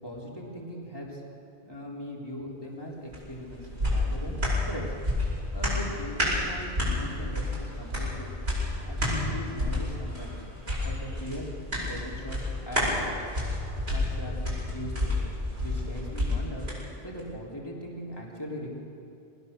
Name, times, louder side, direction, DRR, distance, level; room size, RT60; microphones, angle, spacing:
voice 1, 0.0-1.2 1.6-4.4 4.7-4.8 5.5-8.3 8.9-10.4 10.8-11.5 11.8-13.1 13.9-15.2 15.6-16.7 17.0-18.7, equal, 20° left, -3 dB, 3.8 m, -39 dB
sound 1, 3.1-16.8 17.2-17.3, left 1 dB, 75° right, 7.3 m, -30 dB
24.0 x 19.0 x 6.8 m, 2.6 s
omnidirectional pair, 1.1 m